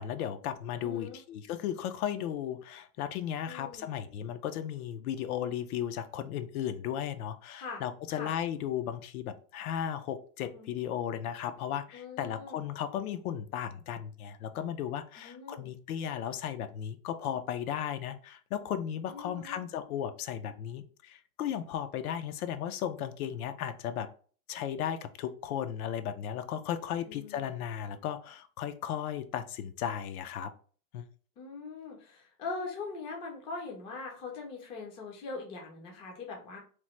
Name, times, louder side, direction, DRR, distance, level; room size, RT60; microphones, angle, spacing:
voice 1, 0.0-24.1 24.5-30.5 30.9-31.0, left 9 dB, 85° left, 10 dB, 0.5 m, -35 dB
voice 2, 0.8-1.2 3.5-3.9 7.5-7.8 8.1-8.3 10.5-10.7 11.9-12.6 15.2-15.7 19.1-19.6 27.1-27.5 31.4-36.6, left 4 dB, 15° left, 0 dB, 0.3 m, -42 dB
3.0 x 2.1 x 3.0 m, 0.42 s
supercardioid pair, 140°, 42 cm